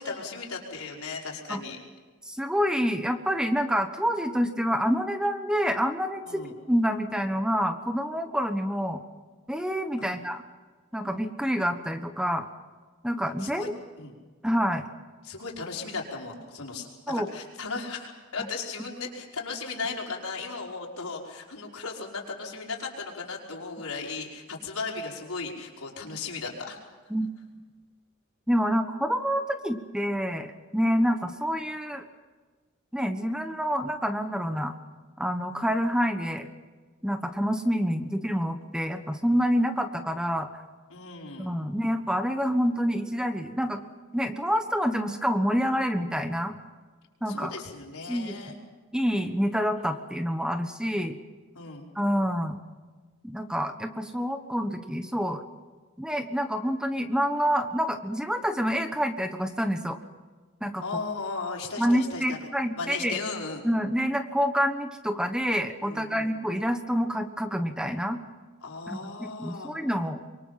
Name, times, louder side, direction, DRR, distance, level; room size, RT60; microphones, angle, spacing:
voice 1, 0.0-1.8 6.2-6.5 10.0-10.2 13.4-13.7 14.0-14.1 15.2-26.8 40.9-41.5 47.3-48.6 51.5-51.9 60.8-63.6 65.8-66.4 68.6-69.8, left 4 dB, 90° left, -1 dB, 5.2 m, -36 dB
voice 2, 2.2-6.4 6.7-9.0 9.5-10.4 10.9-12.5 13.0-13.7 14.4-14.8 17.1-17.3 27.1-27.3 28.5-32.0 32.9-34.7 35.2-36.5 37.0-40.5 41.4-43.8 44.1-46.5 47.2-47.5 48.1-48.4 48.9-51.2 51.9-52.6 53.2-55.4 56.0-60.0 60.6-60.8 61.8-63.2 63.6-68.2 68.9-70.2, equal, 5° right, 7 dB, 1.1 m, -27 dB
26.0 x 23.5 x 5.9 m, 1.4 s
head